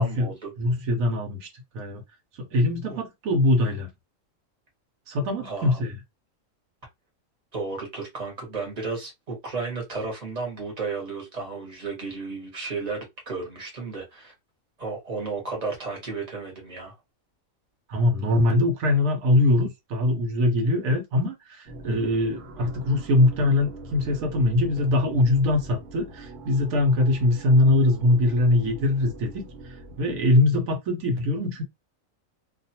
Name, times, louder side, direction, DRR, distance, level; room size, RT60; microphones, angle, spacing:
voice 1, 0.0-0.5 2.9-3.0 5.4-5.8 7.5-14.3 14.8-16.9, right 4 dB, 30° right, 1.1 m, -33 dB
voice 2, 0.6-1.5 1.7-2.0 2.4-3.9 5.1-6.0 17.9-31.6, left 2 dB, 90° right, 1.2 m, -22 dB
sound 1, 21.7-30.2, right 1 dB, 65° right, 1.2 m, -42 dB
2.4 x 2.4 x 2.7 m
omnidirectional pair, 1.4 m